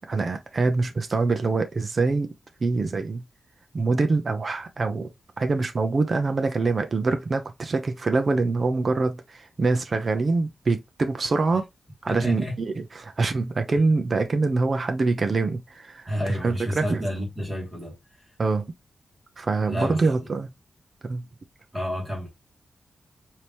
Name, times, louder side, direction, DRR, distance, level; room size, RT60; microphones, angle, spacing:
voice 1, 0.1-2.3 2.6-3.2 3.7-5.1 5.4-11.6 12.0-16.1 16.4-17.0 18.4-18.7 19.4-20.5 21.0-21.2, right 3 dB, 40° right, 0.7 m, -24 dB
voice 2, 12.1-12.6 13.7-13.8 16.1-18.4 19.7-20.3 21.7-22.3, equal, 10° right, 2.2 m, -31 dB
5.0 x 2.9 x 2.9 m
wide cardioid pair, 130°, 0 cm